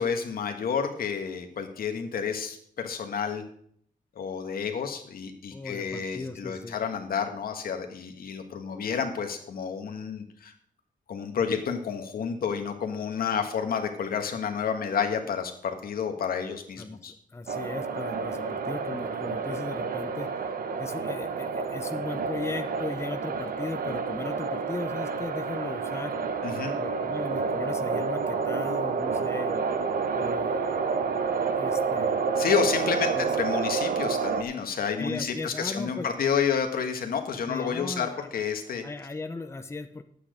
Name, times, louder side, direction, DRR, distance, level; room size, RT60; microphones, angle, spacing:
voice 1, 0.0-3.4 4.1-10.5 11.1-17.1 26.4-26.7 32.4-38.8, left 7 dB, 80° left, 5 dB, 1.5 m, -30 dB
voice 2, 5.5-6.8 16.8-20.4 20.8-26.2 26.8-29.6 30.1-31.1 31.5-32.2 33.1-33.3 35.0-36.3 37.5-38.3 38.8-40.0, left 3 dB, 15° left, 7 dB, 0.8 m, -37 dB
sound 1, 17.5-34.4, right 5 dB, 75° right, 1.0 m, -29 dB
10.0 x 8.6 x 5.1 m, 0.64 s
cardioid pair, 100°, 15 cm